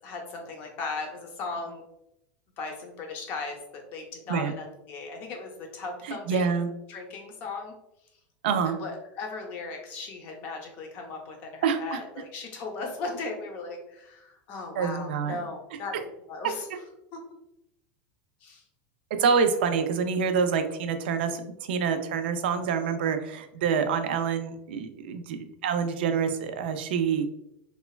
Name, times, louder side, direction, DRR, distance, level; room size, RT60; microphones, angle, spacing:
voice 1, 0.0-1.8 2.6-6.6 6.9-7.7 8.6-16.7 17.1-17.2 18.4-18.6, left 3 dB, 35° left, 3 dB, 0.5 m, -37 dB
voice 2, 6.1-6.7 8.4-8.8 11.6-12.0 14.8-15.4 19.2-21.4 21.7-27.3, right 6 dB, 85° right, 8 dB, 0.3 m, -26 dB
3.0 x 2.1 x 2.3 m, 0.84 s
supercardioid pair, 170°, 5 cm